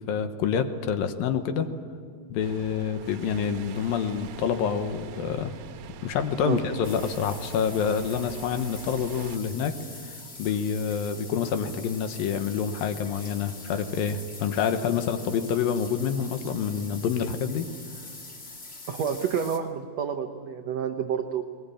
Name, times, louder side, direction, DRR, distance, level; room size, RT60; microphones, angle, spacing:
voice 1, 0.1-1.7 2.3-5.6 6.0-9.7 10.0-17.7, left 7 dB, 75° left, 8 dB, 2.8 m, -27 dB
sound 1, 2.4-9.4, right 6 dB, 70° right, 2.3 m, -43 dB
sound 2, 6.8-19.6, left 3 dB, 30° left, 1.4 m, -44 dB
voice 2, 18.9-21.4, right 7 dB, 90° right, 5 dB, 1.4 m, -29 dB
22.0 x 20.5 x 8.8 m, 2.2 s
omnidirectional pair, 4.5 m